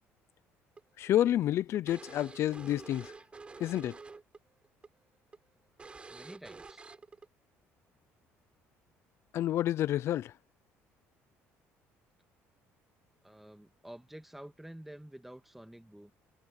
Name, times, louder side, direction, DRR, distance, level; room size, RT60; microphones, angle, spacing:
sound 1, 0.8-4.4 4.6-4.9 5.3-5.4 5.8-7.3, right 4 dB, 20° right, 6.4 m, -49 dB
voice 1, 1.0-3.1 3.6-4.0 9.3-10.3, left 12 dB, 55° left, 0.6 m, -29 dB
voice 2, 6.1-6.9 13.2-16.1, right 1 dB, 5° right, 1.9 m, -49 dB
cardioid pair, 125°, 5 cm